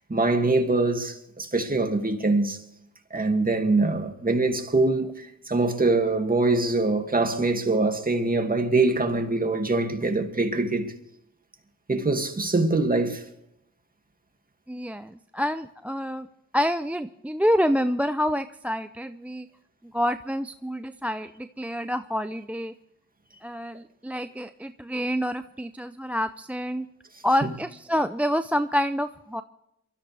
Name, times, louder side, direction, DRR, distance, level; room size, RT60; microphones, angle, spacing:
voice 1, 0.1-2.6 3.1-10.9 11.9-13.2 27.4-27.5, right 2 dB, 25° right, 2.3 m, -23 dB
voice 2, 14.7-16.3 16.5-19.5 19.9-22.7 23.4-26.9 27.2-29.4, equal, 5° right, 0.5 m, -27 dB
23.5 x 14.0 x 3.4 m
cardioid pair, 65°, 33 cm